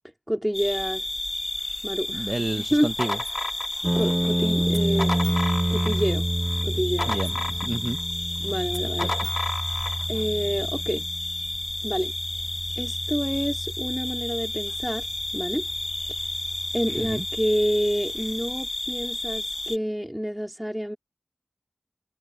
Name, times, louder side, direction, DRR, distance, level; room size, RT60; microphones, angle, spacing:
voice 1, 0.3-1.1 1.8-2.9 3.9-5.2 5.7-6.3 6.6-7.1 8.4-9.1 10.1-11.0 11.8-12.1 12.8-15.1 15.3-15.7 16.7-21.0, equal, 5° right, 3.3 m, -28 dB
sound 1, 0.5-19.8, left 2 dB, 60° left, 1.0 m, -32 dB
voice 2, 2.1-3.2 7.1-8.0 9.0-9.3 17.0-17.2, right 2 dB, 70° right, 0.7 m, -30 dB
sound 2, 2.7-4.1 4.7-6.1 6.5-8.0 8.7-10.0, left 2 dB, 80° left, 1.9 m, -33 dB
sound 3, 3.8-17.9, right 1 dB, 40° right, 0.5 m, -30 dB
wide cardioid pair, 45°, 0 cm